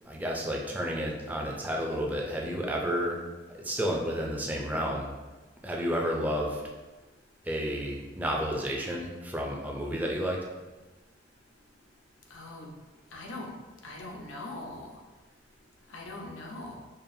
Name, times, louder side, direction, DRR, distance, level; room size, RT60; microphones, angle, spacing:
voice 1, 0.0-3.2 3.5-5.1 5.6-6.6 7.4-10.4, equal, 10° right, -2 dB, 0.5 m, -31 dB
voice 2, 12.3-12.7 13.1-13.5 13.8-15.0 15.9-16.8, left 2 dB, 90° left, 0 dB, 0.7 m, -41 dB
5.2 x 2.5 x 2.7 m, 1.2 s
head